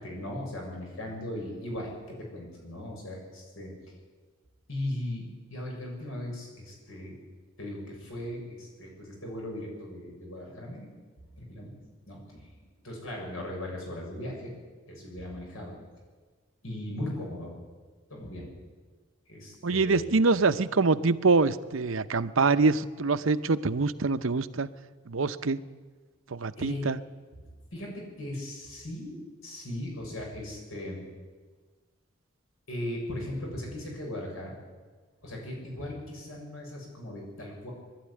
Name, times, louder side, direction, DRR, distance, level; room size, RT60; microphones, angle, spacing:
voice 1, 0.0-3.7 4.7-7.2 7.6-10.9 11.3-11.7 12.1-14.5 14.9-15.8 16.6-17.5 18.1-18.5 19.3-20.1 26.6-26.8 27.7-29.2 29.4-31.0 32.7-34.6 35.2-37.7, left 1 dB, 90° left, -1 dB, 7.0 m, -38 dB
voice 2, 19.6-24.7 25.1-25.6 26.3-27.0, right 3 dB, 80° right, 12 dB, 0.8 m, -25 dB
21.0 x 12.5 x 9.9 m, 1.4 s
head